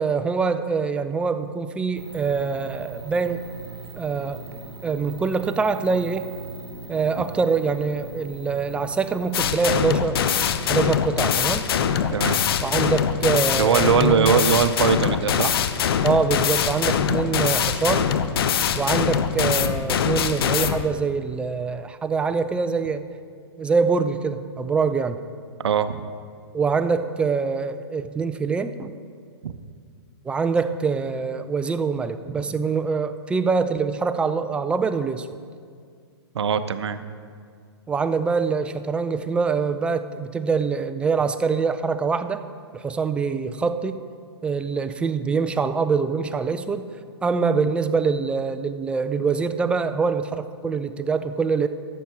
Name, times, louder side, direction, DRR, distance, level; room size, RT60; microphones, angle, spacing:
voice 1, 0.0-3.4 4.0-4.4 4.8-6.3 6.9-10.3 10.7-11.6 12.6-14.5 16.0-18.1 18.8-23.1 23.6-25.2 26.5-28.9 30.2-35.3 37.9-42.4 42.7-44.0 44.4-46.9 47.2-51.7, right 5 dB, 5° right, 9 dB, 0.4 m, -24 dB
sound 1, 2.0-9.3, right 3 dB, 60° right, 1.2 m, -40 dB
sound 2, 9.3-20.9, left 8 dB, 60° left, 0.7 m, -23 dB
voice 2, 13.6-15.5 25.6-26.1 29.4-29.5 36.3-37.0, right 7 dB, 75° right, 11 dB, 0.7 m, -21 dB
13.0 x 7.2 x 4.5 m, 2.1 s
hypercardioid pair, 130°, 14 cm